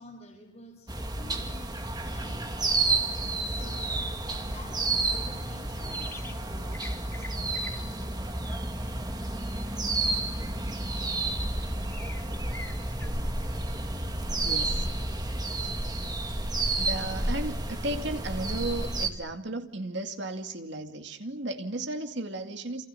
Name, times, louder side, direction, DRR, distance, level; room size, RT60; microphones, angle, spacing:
voice 1, 0.0-3.0 3.4-4.1 4.4-7.9, left 1 dB, 30° left, 0 dB, 5.5 m, -50 dB
sound 1, 0.9-19.1, right 2 dB, 20° right, 2.4 m, -31 dB
sound 2, 5.9-6.4 6.7-13.1, left 2 dB, 10° left, 2.8 m, -49 dB
voice 2, 14.4-14.9 15.6-15.7 16.8-22.9, right 2 dB, 60° right, 6 dB, 2.5 m, -35 dB
29.5 x 28.5 x 6.9 m, 0.74 s
head